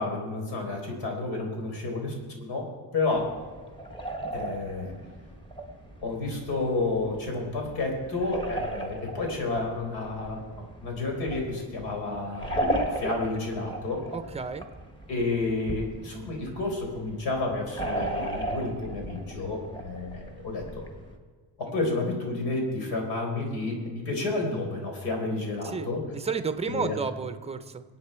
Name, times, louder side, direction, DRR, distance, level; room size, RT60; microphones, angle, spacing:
voice 1, 0.0-2.1 2.4-3.4 4.3-4.9 6.0-12.6 13.0-14.0 15.1-20.8 21.6-26.0 26.7-27.0, left 3 dB, 85° left, 2 dB, 4.3 m, -30 dB
sound 1, 3.2-21.2, right 1 dB, 10° left, 1.4 m, -36 dB
voice 2, 14.1-14.7 25.6-25.9 26.1-27.8, right 5 dB, 15° right, 10 dB, 0.6 m, -32 dB
23.0 x 8.8 x 4.4 m, 1.5 s
cardioid pair, 175°, 39 cm